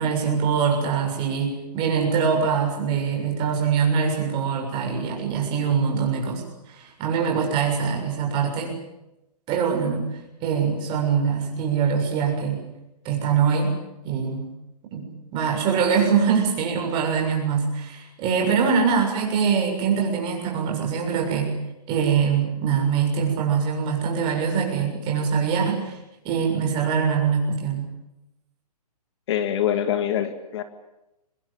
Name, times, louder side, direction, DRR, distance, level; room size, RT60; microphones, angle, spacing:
voice 1, 0.0-8.7 9.5-10.0 10.4-12.6 13.1-13.7 14.0-14.5 14.9-21.5 21.9-26.0 26.2-27.9, right 6 dB, 25° right, 1 dB, 7.2 m, -23 dB
voice 2, 29.3-30.6, left 10 dB, 45° left, 9 dB, 2.0 m, -24 dB
24.5 x 21.0 x 8.9 m, 0.92 s
hypercardioid pair, 155°, 20 cm